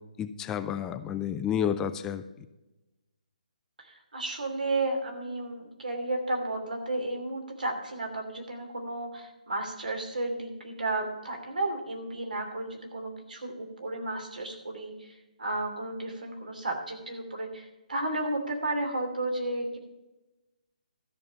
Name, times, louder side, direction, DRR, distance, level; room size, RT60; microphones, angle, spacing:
voice 1, 0.2-2.2, left 9 dB, 10° left, 10 dB, 0.4 m, -30 dB
voice 2, 3.8-19.8, right 2 dB, 85° right, 4 dB, 2.9 m, -33 dB
13.0 x 5.5 x 6.8 m, 1.0 s
hypercardioid pair, 150°, 4 cm